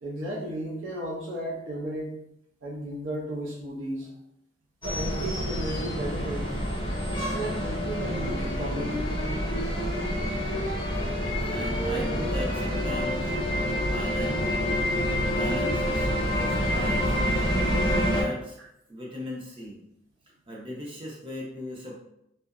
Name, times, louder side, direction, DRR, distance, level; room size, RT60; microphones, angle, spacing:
voice 1, 0.0-2.2 2.6-4.1 4.8-6.5 7.2-8.9, right 1 dB, 85° right, -3 dB, 0.5 m, -34 dB
sound 1, 4.8-18.2, equal, 25° left, 0.6 m, -27 dB
voice 2, 11.4-13.3 13.6-14.7 15.1-17.7 18.1-18.6 18.9-19.8 20.5-22.0, equal, 25° right, -3 dB, 0.6 m, -38 dB
2.8 x 2.0 x 2.3 m, 0.78 s
head